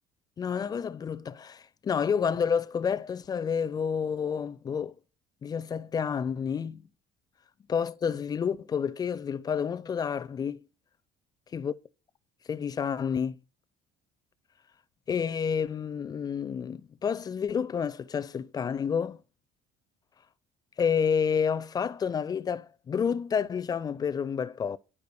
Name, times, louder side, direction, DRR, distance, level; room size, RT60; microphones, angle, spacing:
voice 1, 0.4-5.0 5.4-6.8 7.7-10.6 11.5-11.7 12.5-13.4 15.1-19.2 20.8-24.8, left 7 dB, 20° left, 0.4 m, -29 dB
11.0 x 4.5 x 6.8 m
cardioid pair, 175°, 19 cm